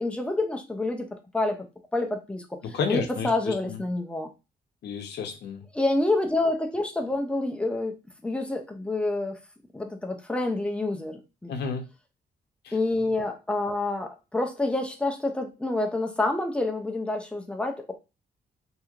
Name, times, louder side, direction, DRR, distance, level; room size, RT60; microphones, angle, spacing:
voice 1, 0.0-1.7 1.9-4.3 5.7-7.9 8.2-9.4 9.7-11.5 12.7-17.9, left 2 dB, 5° left, 4 dB, 0.5 m, -28 dB
voice 2, 2.6-3.8 4.8-5.6 11.5-11.8 12.6-12.8, left 5 dB, 75° left, 5 dB, 0.7 m, -31 dB
2.9 x 2.8 x 2.4 m, 0.28 s
cardioid pair, 135°, 17 cm